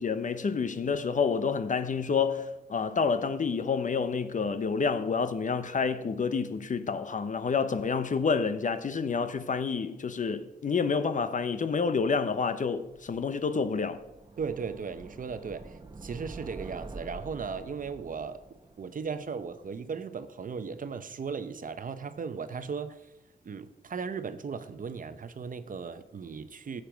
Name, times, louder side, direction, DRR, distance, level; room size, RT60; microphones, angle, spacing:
voice 1, 0.0-14.0, left 5 dB, 50° left, 0.8 m, -28 dB
sound 1, 12.9-20.0, right 3 dB, 25° right, 0.9 m, -47 dB
voice 2, 14.4-18.4 18.8-23.1 23.4-26.8, right 5 dB, 50° right, 0.8 m, -37 dB
15.0 x 7.6 x 5.1 m
wide cardioid pair, 125°, 17 cm